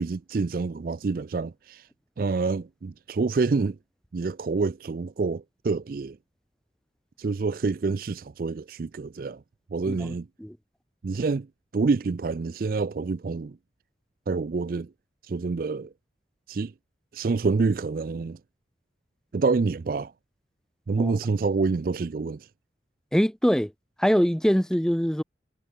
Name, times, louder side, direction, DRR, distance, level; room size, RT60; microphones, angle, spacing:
voice 1, 0.0-1.9 2.2-3.8 4.1-6.2 7.2-9.4 9.7-10.3 11.0-11.5 11.7-13.6 14.3-14.9 15.2-15.9 16.5-16.7 17.1-18.4 19.3-20.1 20.9-22.5, right 4 dB, 50° right, 0.4 m, -27 dB
voice 2, 9.9-10.6 21.0-21.1 23.1-23.7 24.0-25.2, equal, 5° left, 0.8 m, -23 dB
head